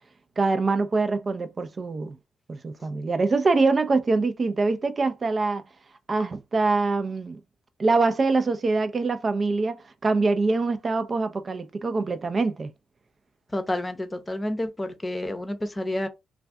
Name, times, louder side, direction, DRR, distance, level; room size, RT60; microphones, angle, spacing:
voice 1, 0.4-2.2 2.5-5.6 6.1-7.4 7.8-12.7, right 3 dB, 45° right, 0.5 m, -24 dB
voice 2, 13.5-16.1, left 1 dB, 20° left, 0.7 m, -29 dB
2.5 x 2.3 x 3.4 m
supercardioid pair, 55°, 0 cm